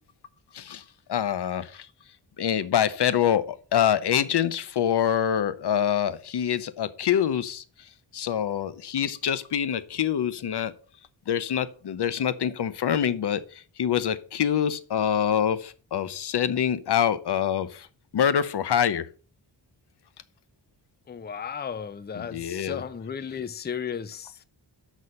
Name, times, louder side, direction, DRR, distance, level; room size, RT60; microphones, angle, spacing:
voice 1, 1.1-1.9 2.4-7.6 8.1-10.7 11.3-17.9 18.1-19.1 22.1-22.8, left 9 dB, 60° left, 0.8 m, -25 dB
voice 2, 21.1-24.4, left 7 dB, 25° left, 0.5 m, -35 dB
6.3 x 5.5 x 6.3 m
wide cardioid pair, 150°, 45 cm